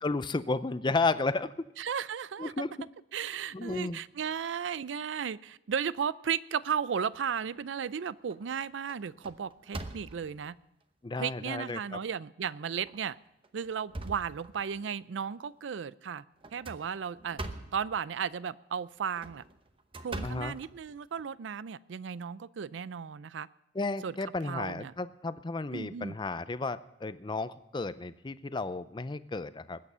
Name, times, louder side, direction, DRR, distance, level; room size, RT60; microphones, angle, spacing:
voice 1, 0.0-1.5 2.4-2.9 3.5-4.0 11.0-12.0 20.2-20.6 23.7-29.8, left 3 dB, 25° left, 0.5 m, -33 dB
voice 2, 1.8-2.7 3.1-10.6 11.2-13.2 13.5-16.2 16.5-17.4 17.7-19.4 20.0-23.5 24.0-24.1 24.5-24.9 25.7-26.2, right 7 dB, 80° right, 0.4 m, -35 dB
sound 1, 7.3-7.8 8.3-8.5 8.9-10.5 11.2-11.3 11.7-11.8 12.7-13.0 13.4-14.9 16.4-17.9 19.0-21.2, right 2 dB, 30° right, 0.9 m, -43 dB
20.5 x 8.6 x 5.6 m
head